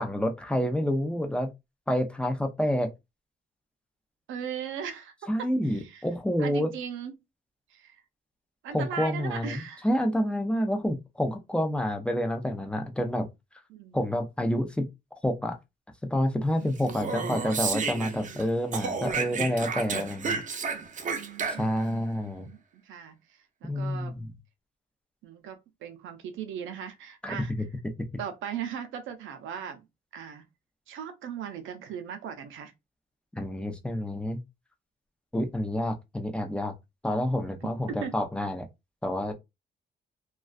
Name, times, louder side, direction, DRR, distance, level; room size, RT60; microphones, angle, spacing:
voice 1, 0.0-1.5 1.9-2.9 5.3-6.7 8.7-13.3 13.9-14.9 15.2-15.6 16.1-20.4 21.5-22.5 23.6-24.3 27.2-27.6 33.3-34.4 35.3-36.7 37.0-38.7 39.0-39.3, equal, 5° left, 0.5 m, -28 dB
voice 2, 4.3-5.1 5.4-6.0 6.4-7.1 7.7-8.0 8.6-9.9 13.7-14.0 16.6-17.3 17.9-18.1 21.0-24.2 25.2-27.5 28.2-29.8 30.1-30.4 30.9-32.7 37.9-38.2, right 8 dB, 80° right, 0.6 m, -39 dB
Speech, 16.8-18.4 18.7-21.9, right 5 dB, 40° right, 0.6 m, -32 dB
2.3 x 2.3 x 2.4 m
cardioid pair, 90°, 20 cm